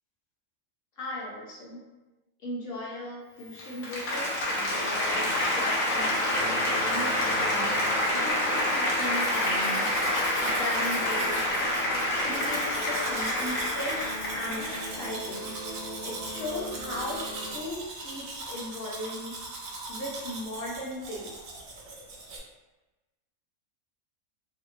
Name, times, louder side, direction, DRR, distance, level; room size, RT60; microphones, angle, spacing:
voice 1, 1.0-1.8 2.4-7.7 8.1-9.9 10.4-11.4 11.9-15.5 16.0-17.2 17.5-19.3 19.9-21.4, left 1 dB, 55° left, -5 dB, 0.7 m, -37 dB
Applause, 3.4-15.0, left 1 dB, 85° left, 1.1 m, -27 dB
sound 1, 6.3-17.5, right 1 dB, 70° right, 0.4 m, -41 dB
Domestic sounds home sounds, 8.8-22.4, right 2 dB, 85° right, 1.0 m, -40 dB
2.8 x 2.0 x 2.4 m, 1.1 s
omnidirectional pair, 1.4 m